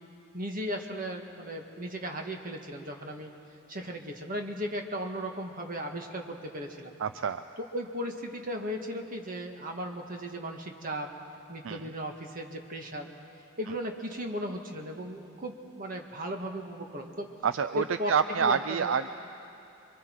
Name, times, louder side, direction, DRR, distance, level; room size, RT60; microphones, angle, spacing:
voice 1, 0.3-3.3 3.7-6.9 7.7-11.1 11.5-13.1 13.6-17.3 17.8-18.1 18.4-18.9, equal, 45° right, 2 dB, 1.8 m, -36 dB
voice 2, 7.0-7.4 11.6-11.9 17.4-19.1, right 6 dB, 70° right, 10 dB, 0.4 m, -27 dB
28.0 x 23.5 x 4.7 m, 2.8 s
head